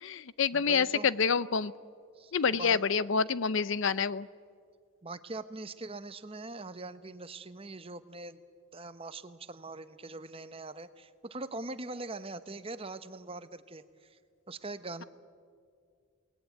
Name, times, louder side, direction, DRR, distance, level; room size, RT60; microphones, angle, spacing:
voice 1, 0.0-1.7 2.3-4.3, left 6 dB, 60° left, 18 dB, 0.6 m, -27 dB
voice 2, 0.5-1.1 2.2-2.8 5.0-8.4 8.7-14.2 14.5-15.0, right 2 dB, 25° right, 12 dB, 0.9 m, -42 dB
29.0 x 19.0 x 9.2 m, 2.2 s
head